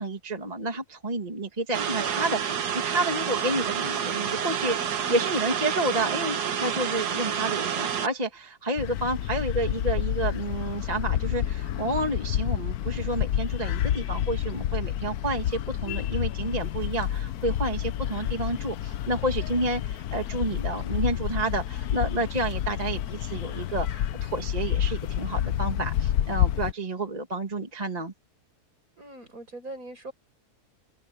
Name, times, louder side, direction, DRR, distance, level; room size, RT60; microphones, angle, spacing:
voice 1, 0.0-28.1, right 2 dB, 25° right, 2.0 m, -30 dB
sound 1, 1.7-8.1, right 8 dB, 80° right, 1.8 m, -29 dB
sound 2, 8.8-26.7, left 11 dB, 70° left, 1.2 m, -29 dB
voice 2, 29.0-30.1, right 2 dB, 60° right, 7.9 m, -41 dB
open air
omnidirectional pair, 1.7 m